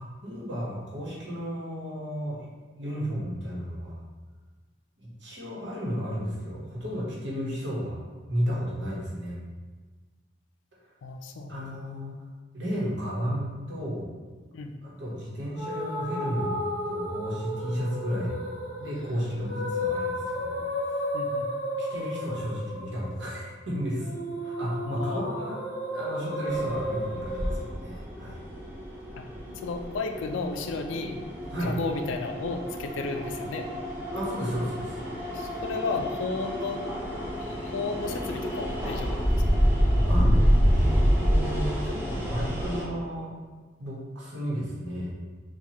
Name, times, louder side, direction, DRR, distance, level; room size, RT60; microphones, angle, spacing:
voice 1, 0.0-2.5 2.8-4.0 5.0-8.0 8.3-9.4 11.5-12.1 12.5-14.1 14.8-16.5 16.9-18.4 18.8-21.0 21.8-24.1 24.4-25.6 25.9-28.4 31.5-31.8 34.1-35.0 39.7-40.4 40.7-43.3 43.8-45.1, equal, 75° right, -5 dB, 1.0 m, -33 dB
voice 2, 11.0-11.5 14.5-14.7 19.1-19.2 21.1-21.5 24.8-25.2 29.2-29.3 29.6-31.1 31.7-33.7 35.3-36.9 37.2-39.3 39.5-39.6, left 3 dB, 90° left, 5 dB, 0.4 m, -33 dB
sound 1, 15.6-27.6, left 1 dB, 45° left, 0.7 m, -33 dB
sound 2, 26.5-42.8, equal, 10° right, 0.5 m, -28 dB
4.5 x 2.3 x 2.9 m, 1.4 s
head